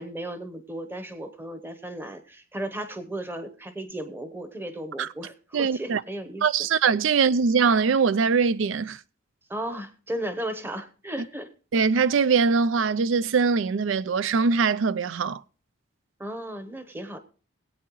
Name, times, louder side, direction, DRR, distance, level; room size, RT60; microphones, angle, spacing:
voice 1, 0.0-6.4 9.5-11.5 16.2-17.2, right 1 dB, 10° right, 0.9 m, -35 dB
voice 2, 5.5-6.0 6.4-9.0 11.7-15.4, right 5 dB, 80° right, 0.4 m, -22 dB
21.5 x 8.5 x 3.0 m
head